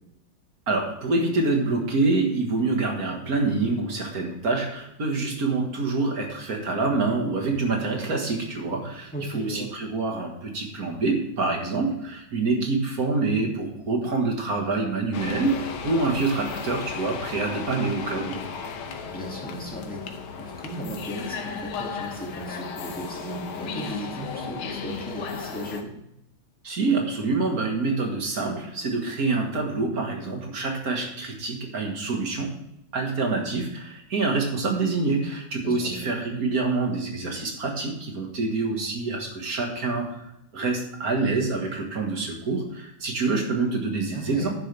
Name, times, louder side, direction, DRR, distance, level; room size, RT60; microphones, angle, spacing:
voice 1, 0.7-18.4 26.6-32.5 32.9-44.5, right 3 dB, 45° right, 2 dB, 2.0 m, -26 dB
voice 2, 9.1-9.7 19.1-20.1 20.4-25.9 35.5-36.0 44.1-44.5, right 1 dB, 5° left, -2 dB, 2.2 m, -36 dB
sound 1, 15.1-25.8, left 6 dB, 85° left, 1.8 m, -35 dB
10.5 x 10.5 x 3.4 m, 0.80 s
omnidirectional pair, 2.2 m